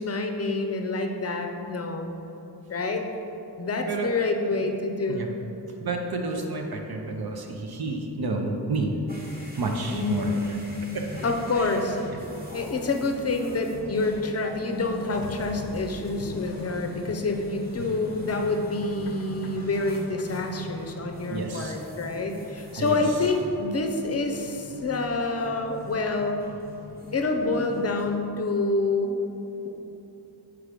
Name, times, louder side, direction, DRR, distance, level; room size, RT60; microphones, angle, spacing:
voice 1, 0.0-2.1 2.7-3.1 3.6-5.3 9.9-10.5 11.2-12.0 12.5-26.4 27.1-29.2, left 3 dB, 35° left, 4 dB, 0.6 m, -27 dB
voice 2, 5.8-8.9 9.6-10.3 10.9-11.1 11.6-11.8 12.1-12.2 21.3-21.8 22.8-23.0, right 3 dB, 60° right, 2 dB, 0.8 m, -30 dB
sound 1, 9.1-28.1, equal, 20° right, 1.1 m, -43 dB
sound 2, 14.4-18.4, right 1 dB, 80° right, 1.3 m, -44 dB
sound 3, 15.1-20.9, left 4 dB, 90° left, 0.6 m, -41 dB
6.1 x 4.8 x 5.1 m, 3.0 s
wide cardioid pair, 135°, 41 cm